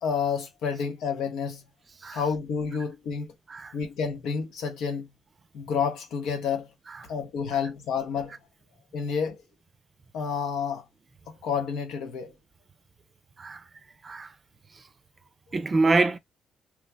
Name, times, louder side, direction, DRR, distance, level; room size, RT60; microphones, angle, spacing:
voice 1, 0.0-1.7 2.1-3.3 3.7-5.1 5.5-6.7 7.1-8.4 8.9-9.4 10.1-10.9 11.3-12.3, left 6 dB, 85° left, 0.9 m, -29 dB
voice 2, 15.5-16.2, right 3 dB, 35° right, 0.5 m, -25 dB
3.1 x 2.1 x 3.3 m
cardioid pair, 90°, 0 cm